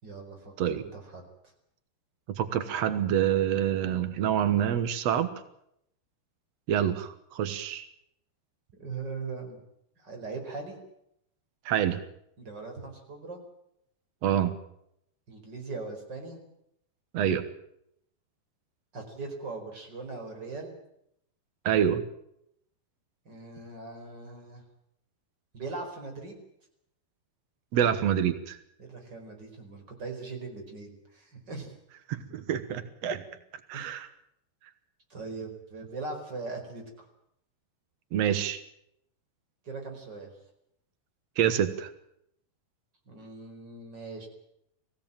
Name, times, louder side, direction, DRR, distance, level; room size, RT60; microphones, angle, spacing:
voice 1, 0.0-1.2 8.8-9.6 10.0-10.8 12.4-13.4 15.3-16.4 18.9-20.7 23.2-24.6 25.5-26.4 28.8-31.7 32.8-33.1 33.7-33.9 35.1-37.1 39.6-40.3 43.1-44.3, right 3 dB, 25° right, 3 dB, 5.2 m, -40 dB
voice 2, 2.3-5.3 6.7-7.9 11.6-12.0 14.2-14.5 17.1-17.4 21.6-22.0 27.7-28.6 32.1-33.2 33.7-34.1 38.1-38.6 41.4-41.9, right 9 dB, 90° right, 11 dB, 1.4 m, -27 dB
23.0 x 16.5 x 8.9 m, 0.75 s
omnidirectional pair, 4.9 m